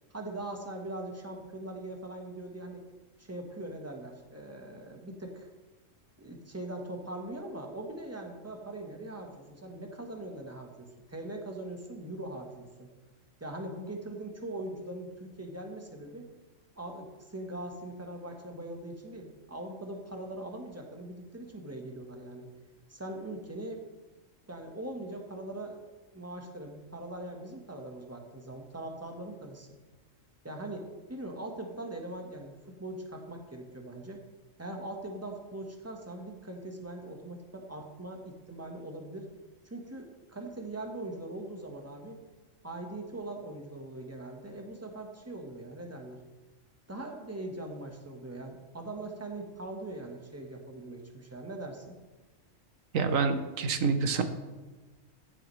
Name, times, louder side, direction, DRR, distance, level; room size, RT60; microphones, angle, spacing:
voice 1, 0.1-2.8 3.2-5.5 6.2-12.9 13.4-16.3 16.8-22.5 22.9-23.8 24.5-25.8 26.1-29.7 30.4-34.2 34.6-39.3 39.6-42.2 42.6-46.2 46.9-52.0, right 1 dB, 10° right, 2 dB, 1.3 m, -41 dB
voice 2, 52.9-54.2, right 5 dB, 80° right, 8 dB, 1.3 m, -27 dB
14.5 x 7.7 x 3.2 m, 1.3 s
omnidirectional pair, 1.4 m